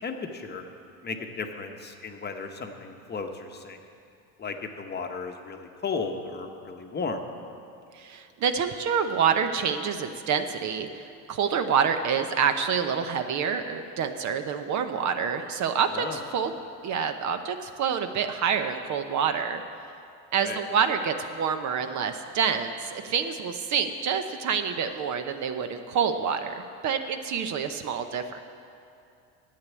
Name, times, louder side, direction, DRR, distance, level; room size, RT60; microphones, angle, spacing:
voice 1, 0.0-0.7 1.0-3.8 4.4-7.2 15.9-16.2 20.4-20.6, left 4 dB, 25° left, 4 dB, 1.0 m, -35 dB
voice 2, 7.9-16.5 16.8-19.6 20.3-28.4, right 7 dB, 45° right, 8 dB, 0.8 m, -27 dB
10.5 x 8.4 x 8.4 m, 2.5 s
supercardioid pair, 105°, 41 cm